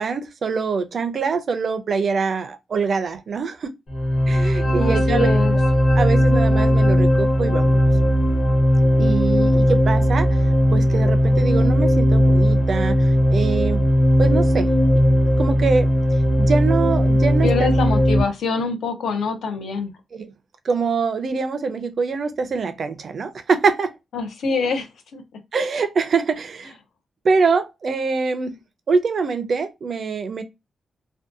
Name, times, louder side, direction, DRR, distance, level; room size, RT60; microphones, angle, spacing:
voice 1, 0.0-3.7 4.3-5.3 6.0-7.9 9.0-10.3 10.7-13.8 14.2-14.7 15.4-15.9 16.4-17.7 20.1-20.3 20.6-23.9 25.5-26.7 27.2-28.5 28.9-30.4, right 5 dB, 45° right, 0.4 m, -24 dB
sound 1, 3.9-18.2, equal, 40° left, 0.7 m, -17 dB
voice 2, 4.8-5.6 17.4-19.9 24.1-25.2, left 4 dB, 85° left, 0.5 m, -25 dB
2.6 x 2.1 x 2.4 m
wide cardioid pair, 175°, 0 cm